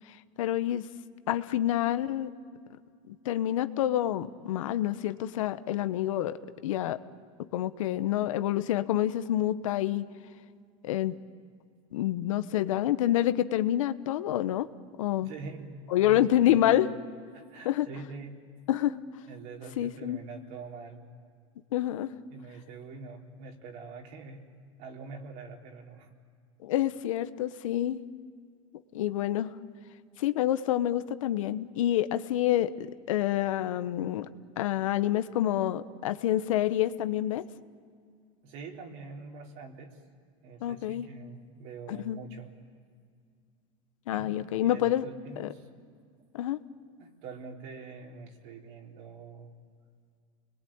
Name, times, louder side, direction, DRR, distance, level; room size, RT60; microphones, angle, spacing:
voice 1, 0.1-0.9 1.3-2.3 3.1-7.0 7.5-10.1 10.8-11.2 11.9-14.7 15.0-15.3 15.9-16.9 17.6-17.9 18.7-19.0 19.8-20.2 21.7-22.1 26.6-28.0 28.9-29.5 30.2-34.3 34.6-37.4 40.6-41.1 41.9-42.2 44.1-45.1 45.4-45.5 46.3-46.6, left 12 dB, 80° left, 12 dB, 1.1 m, -28 dB
voice 2, 15.2-15.7 16.0-16.9 17.3-18.3 19.3-21.1 22.3-24.4 24.8-26.1 38.4-40.0 40.4-42.5 44.1-44.3 44.6-45.7 47.0-49.5, right 4 dB, 55° right, 1 dB, 3.8 m, -45 dB
30.0 x 21.5 x 8.8 m, 2.1 s
supercardioid pair, 130°, 17 cm